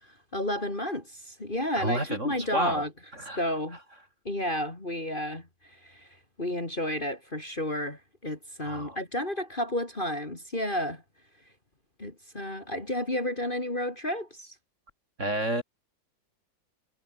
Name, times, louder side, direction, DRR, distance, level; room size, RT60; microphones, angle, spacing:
voice 1, 0.0-2.9 3.4-3.8 4.3-6.1 6.4-11.0 12.0-14.6, left 1 dB, 25° left, 3.7 m, -32 dB
voice 2, 1.8-2.8 3.2-3.4 8.6-9.0 15.2-15.6, right 1 dB, 35° right, 7.1 m, -30 dB
omnidirectional pair, 2.1 m